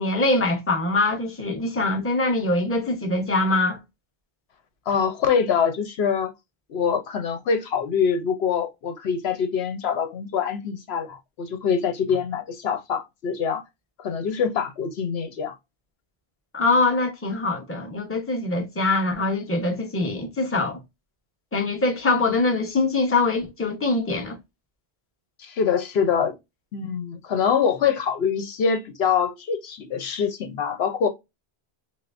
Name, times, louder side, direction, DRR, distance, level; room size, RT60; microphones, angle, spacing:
voice 1, 0.0-3.8 16.5-20.8 21.5-24.3, left 2 dB, 15° left, 0.8 m, -23 dB
voice 2, 4.9-6.3 6.7-13.6 14.0-15.5 25.4-26.3 26.7-31.1, left 6 dB, 75° left, 0.9 m, -24 dB
5.6 x 2.0 x 2.5 m
omnidirectional pair, 1.1 m